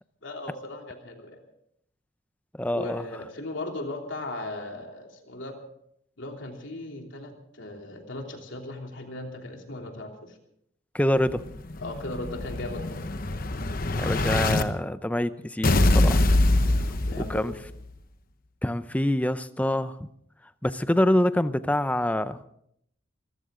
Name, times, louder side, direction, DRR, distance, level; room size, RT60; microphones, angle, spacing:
voice 1, 0.2-1.4 2.7-5.6 6.2-10.4 11.8-13.0 16.7-17.5, left 2 dB, 70° left, 2 dB, 3.2 m, -37 dB
voice 2, 2.6-3.0 10.9-11.4 14.0-16.2 17.2-17.5 18.6-20.1 20.6-22.4, left 1 dB, 5° left, 13 dB, 0.5 m, -25 dB
Explosion, 11.3-14.6 15.6-17.6, left 2 dB, 45° left, 1.0 m, -24 dB
25.0 x 14.5 x 3.8 m, 0.71 s
head